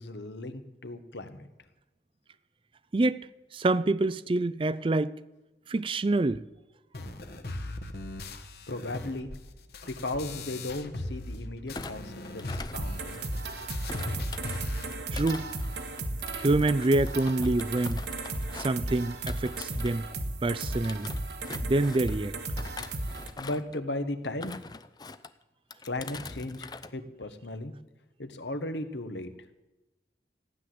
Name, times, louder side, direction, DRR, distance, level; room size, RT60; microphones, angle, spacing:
voice 1, 0.0-1.5 8.7-9.3 9.9-13.2 23.4-24.6 25.8-27.7 28.2-29.3, left 2 dB, 85° left, 1.4 m, -36 dB
voice 2, 2.9-3.3 3.5-5.1 5.7-6.4 15.1-15.5 16.4-18.0 18.5-20.0 20.4-21.1 21.6-22.3, right 2 dB, 30° right, 0.4 m, -26 dB
sound 1, 6.9-11.4 11.7-14.9, left 2 dB, 60° left, 1.3 m, -39 dB
Thump thud, 11.7-13.4 13.9-20.2 20.6-22.2 22.6-23.8 24.2-25.3 25.7-26.9 27.2-27.5, left 4 dB, 25° left, 0.5 m, -44 dB
sound 2, 12.7-23.3, right 2 dB, 75° right, 1.6 m, -35 dB
15.0 x 10.0 x 7.8 m
head